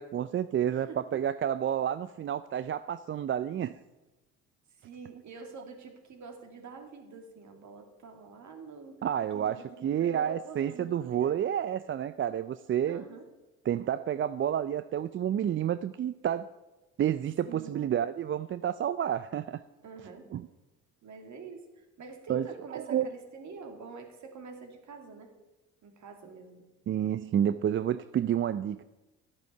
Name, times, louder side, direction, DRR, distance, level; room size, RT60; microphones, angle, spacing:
voice 1, 0.0-3.8 9.0-13.0 13.7-16.5 17.0-19.6 20.3-20.4 22.3-23.1 26.9-28.8, right 10 dB, 35° right, 13 dB, 0.5 m, -30 dB
voice 2, 4.7-9.1 9.3-11.4 12.9-13.3 17.5-17.9 19.8-20.3 21.0-25.3 25.8-26.7, right 4 dB, 55° right, 3 dB, 2.6 m, -47 dB
12.0 x 8.9 x 6.7 m, 1.1 s
hypercardioid pair, 60°, 35 cm